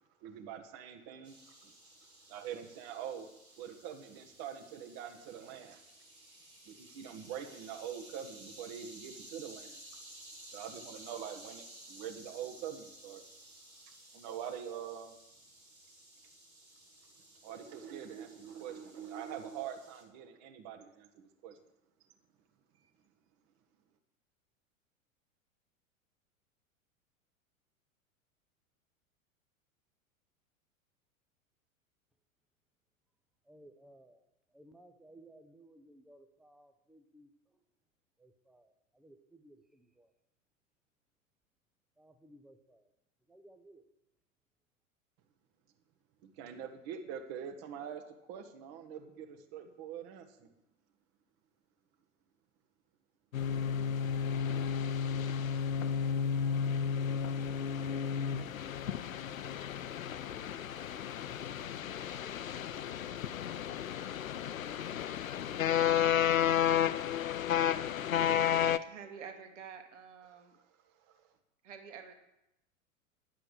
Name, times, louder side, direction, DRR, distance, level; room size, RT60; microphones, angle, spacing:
voice 1, 0.2-1.7 2.3-3.3 3.6-5.8 6.6-9.8 10.5-13.2 13.9-15.2 17.4-21.6 46.2-48.0 48.3-50.5 70.5-71.3, right 8 dB, 40° right, 1.4 m, -44 dB
sound 1, 1.2-20.0, right 1 dB, 90° right, 3.1 m, -55 dB
voice 2, 33.5-34.2 34.5-37.3 38.2-40.1 42.0-42.9 43.3-43.8, right 1 dB, ahead, 0.4 m, -59 dB
sound 2, 53.3-68.8, left 8 dB, 75° left, 0.6 m, -32 dB
voice 3, 68.8-70.6 71.6-72.1, right 6 dB, 60° right, 1.9 m, -48 dB
10.5 x 7.6 x 6.7 m
figure-of-eight pair, 90°, 41 cm